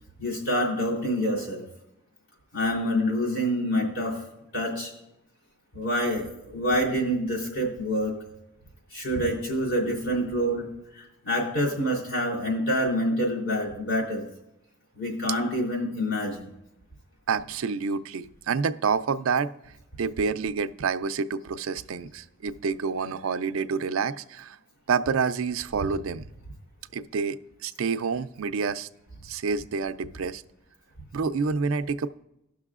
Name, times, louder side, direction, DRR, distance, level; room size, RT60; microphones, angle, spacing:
voice 1, 0.2-1.6 2.5-4.2 4.5-4.9 5.7-8.1 8.9-10.7 10.9-14.3 15.0-16.5, equal, 70° left, -1 dB, 3.2 m, -27 dB
voice 2, 17.3-19.5 20.0-24.6 24.9-26.3 26.9-28.9 29.2-30.4 31.1-32.1, right 5 dB, 85° right, 12 dB, 0.4 m, -28 dB
17.5 x 6.1 x 2.4 m, 0.86 s
head